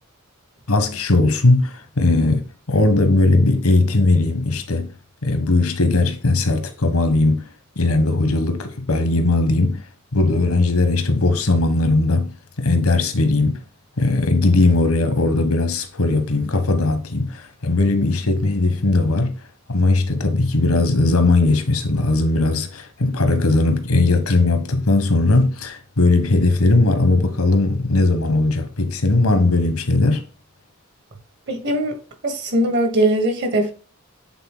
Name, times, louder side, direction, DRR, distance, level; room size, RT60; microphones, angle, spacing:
voice 1, 0.7-4.9 5.2-7.4 7.8-9.8 10.1-12.3 12.6-13.6 14.0-19.3 19.7-30.2, left 2 dB, 85° left, 1.2 m, -18 dB
voice 2, 31.5-32.0 32.2-33.7, right 1 dB, 55° right, 1.5 m, -20 dB
8.1 x 3.8 x 3.8 m
head